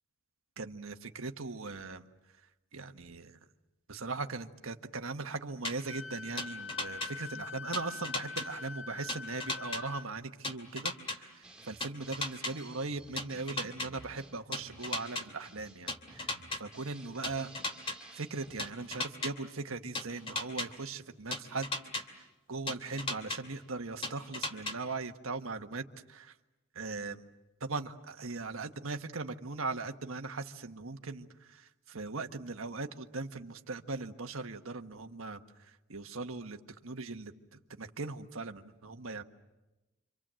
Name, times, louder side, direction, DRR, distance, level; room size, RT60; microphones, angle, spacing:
voice 1, 0.6-2.1 2.7-3.4 3.9-17.5 18.1-21.7 22.0-26.3 26.7-27.2 27.6-39.2, right 3 dB, 75° right, 6 dB, 1.5 m, -39 dB
sound 1, 5.6-5.7 6.4-7.1 7.7-8.5 9.1-9.8 10.4-11.2 11.8-12.5 13.2-13.9 14.5-15.2 15.9-16.6 17.2-18.0 18.6-19.3 19.9-20.7 21.3-22.0 22.7-23.4 24.0-24.7, left 2 dB, 25° left, 2.7 m, -35 dB
Wind instrument woodwind instrument, 5.8-10.1, left 5 dB, 65° left, 1.8 m, -44 dB
Drum kit, 11.4-18.7, right 2 dB, 5° right, 2.2 m, -55 dB
29.5 x 26.0 x 7.7 m, 1.0 s
head